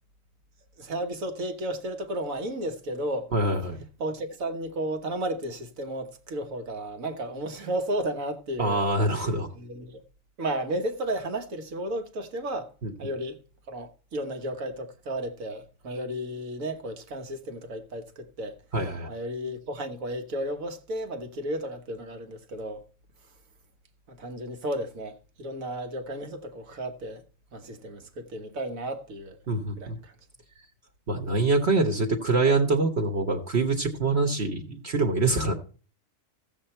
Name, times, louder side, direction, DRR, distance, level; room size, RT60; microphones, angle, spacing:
voice 1, 0.8-3.3 4.0-9.2 9.5-10.0 10.4-12.7 13.0-13.4 13.7-18.6 19.1-22.8 24.1-27.2 27.5-29.4 29.8-30.1, right 1 dB, 90° right, 1.7 m, -33 dB
voice 2, 3.3-3.8 8.6-9.5 12.8-12.9 18.7-19.1 29.5-30.0 31.1-35.6, right 3 dB, 55° right, 1.4 m, -25 dB
14.5 x 7.3 x 4.4 m
omnidirectional pair, 1.4 m